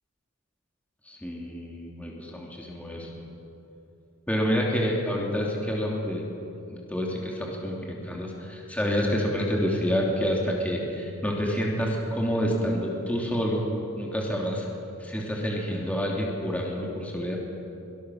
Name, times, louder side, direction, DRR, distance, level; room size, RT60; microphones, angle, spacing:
voice 1, 1.1-3.1 4.3-6.2 6.7-13.7 14.0-14.7 15.0-17.4, equal, 5° left, -2 dB, 2.8 m, -28 dB
23.5 x 20.0 x 6.4 m, 2.8 s
head